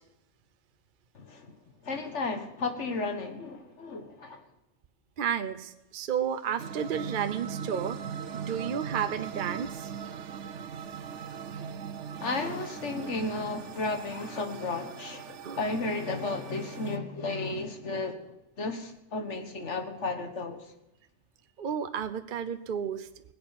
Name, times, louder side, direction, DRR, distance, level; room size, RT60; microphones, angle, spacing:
voice 1, 1.2-1.6 1.8-4.4 12.2-18.2 18.6-20.6, left 3 dB, 85° left, 1.9 m, -33 dB
voice 2, 5.2-8.0 8.3-9.9 15.4-15.6 21.6-23.1, right 8 dB, 50° right, 0.8 m, -32 dB
sound 1, 6.6-17.0, right 7 dB, 90° right, 1.1 m, -40 dB
20.5 x 8.7 x 5.9 m
omnidirectional pair, 1.2 m